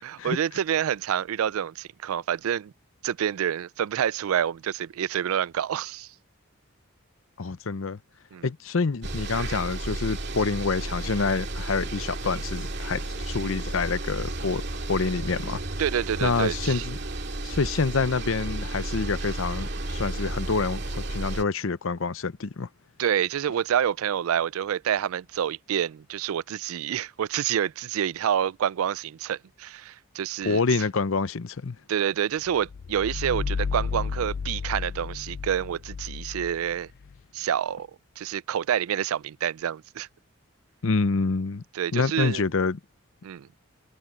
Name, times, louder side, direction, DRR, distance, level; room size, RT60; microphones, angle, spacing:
voice 1, 0.0-2.7 3.0-6.1 8.3-8.4 15.8-16.9 23.0-30.6 31.9-36.9 37.3-37.9 38.2-40.1 41.7-42.4 43.2-43.5, right 9 dB, 80° right, 0.4 m, -28 dB
voice 2, 7.4-8.0 8.4-14.6 14.9-15.6 16.2-17.0 17.4-22.7 30.4-31.8 40.8-41.6 41.9-42.8, left 4 dB, 70° left, 0.7 m, -27 dB
sound 1, 9.0-21.4, right 2 dB, 50° right, 2.4 m, -33 dB
sound 2, 32.5-37.2, left 5 dB, 50° left, 0.3 m, -32 dB
head